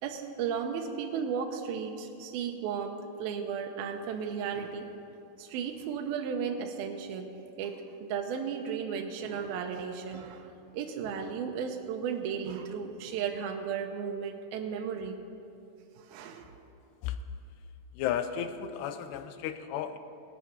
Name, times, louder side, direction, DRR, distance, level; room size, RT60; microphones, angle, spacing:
voice 1, 0.0-4.9 5.4-7.3 7.6-15.2 16.0-16.5, right 7 dB, 75° right, 3 dB, 2.4 m, -35 dB
voice 2, 18.0-20.0, left 9 dB, 85° left, 10 dB, 2.7 m, -33 dB
19.0 x 8.2 x 5.9 m, 2.7 s
omnidirectional pair, 4.8 m